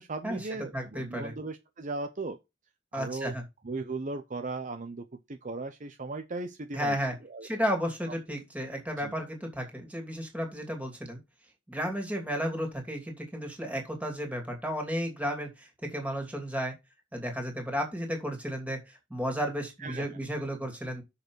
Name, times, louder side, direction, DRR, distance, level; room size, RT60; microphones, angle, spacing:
voice 1, 0.0-2.4 2.9-3.3 3.6-7.5 9.0-9.1 19.8-20.1, right 3 dB, 45° right, 0.7 m, -37 dB
voice 2, 0.7-1.3 2.9-3.4 6.7-7.1 7.4-11.2 11.7-16.7 17.1-21.0, equal, 10° right, 2.8 m, -33 dB
6.8 x 5.4 x 6.2 m
head